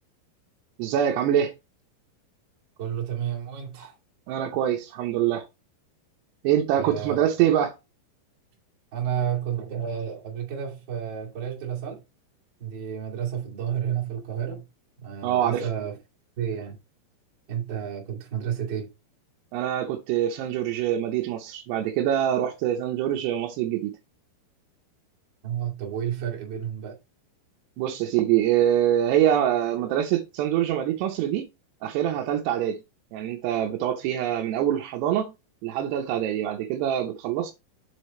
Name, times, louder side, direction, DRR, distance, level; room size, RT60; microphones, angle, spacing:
voice 1, 0.8-1.5 4.3-5.5 6.4-7.8 15.2-15.7 19.5-23.9 27.8-31.5 31.8-32.8 33.1-35.3 35.6-37.5, right 10 dB, 80° right, 2.6 m, -24 dB
voice 2, 2.8-3.9 6.7-7.3 8.9-12.0 12.6-14.6 15.0-16.0 16.4-16.8 17.5-18.9 25.4-27.0, right 9 dB, 35° right, 2.2 m, -31 dB
7.2 x 4.8 x 4.2 m
omnidirectional pair, 5.4 m